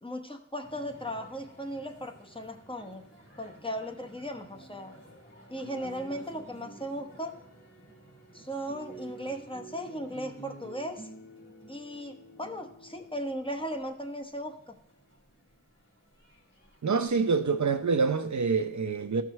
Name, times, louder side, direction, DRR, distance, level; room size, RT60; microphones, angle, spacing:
voice 1, 0.0-3.0 3.4-4.9 5.5-7.3 8.3-11.1 11.7-14.7, equal, 15° left, 1.0 m, -37 dB
sound 1, 0.6-17.4, right 2 dB, 35° left, 3.4 m, -51 dB
voice 2, 16.8-19.2, right 5 dB, 60° right, 0.7 m, -26 dB
14.0 x 6.1 x 3.2 m
wide cardioid pair, 65°, 33 cm